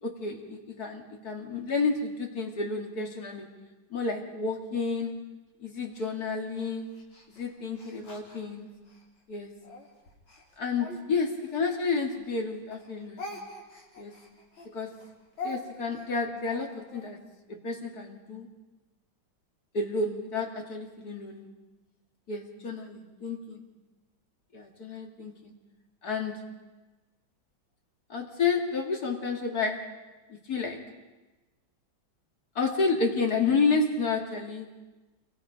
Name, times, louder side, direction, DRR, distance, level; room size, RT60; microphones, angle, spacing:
voice 1, 0.0-3.5 3.9-5.3 5.6-7.0 7.3-8.7 9.3-9.5 10.6-13.3 14.0-14.2 14.7-14.9 15.4-17.2 17.5-18.5 19.7-21.5 22.3-23.6 24.5-25.5 26.0-26.5 28.1-30.0 30.3-30.9 32.6-34.7, left 4 dB, 50° left, 2 dB, 2.7 m, -30 dB
Speech, 5.9-9.1 9.6-12.4 12.7-17.1, left 2 dB, 75° left, 4.4 m, -44 dB
28.0 x 23.5 x 5.1 m, 1.2 s
omnidirectional pair, 2.2 m